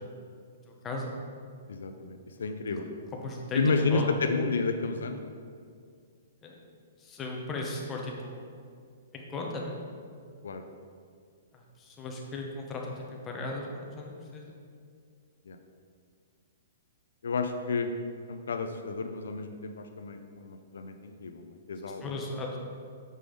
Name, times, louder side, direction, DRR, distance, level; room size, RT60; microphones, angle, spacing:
voice 1, 0.7-1.1 3.1-4.1 6.4-6.7 7.0-8.4 9.1-9.8 11.5-14.5 22.0-22.6, left 2 dB, 15° left, -1 dB, 0.9 m, -37 dB
voice 2, 1.7-3.0 3.5-5.3 10.4-10.6 15.5-15.6 17.2-17.9 18.3-22.2, left 4 dB, 85° left, 7 dB, 0.5 m, -31 dB
6.7 x 5.0 x 3.8 m, 2.2 s
hypercardioid pair, 150°, 0 cm